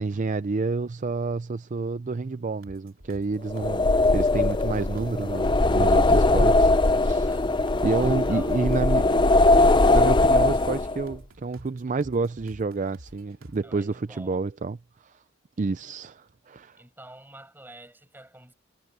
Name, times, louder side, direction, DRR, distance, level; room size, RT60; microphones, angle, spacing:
voice 1, 0.0-7.3 7.8-9.2 9.9-14.8 15.0-15.2 15.6-16.8, right 3 dB, 35° right, 0.4 m, -29 dB
sound 1, 2.6-13.6, right 1 dB, 85° right, 3.2 m, -50 dB
sound 2, 3.5-11.1, left 2 dB, 20° left, 0.6 m, -20 dB
voice 2, 6.1-6.6 7.2-8.6 13.6-14.4 16.8-18.5, right 1 dB, 10° right, 7.9 m, -49 dB
head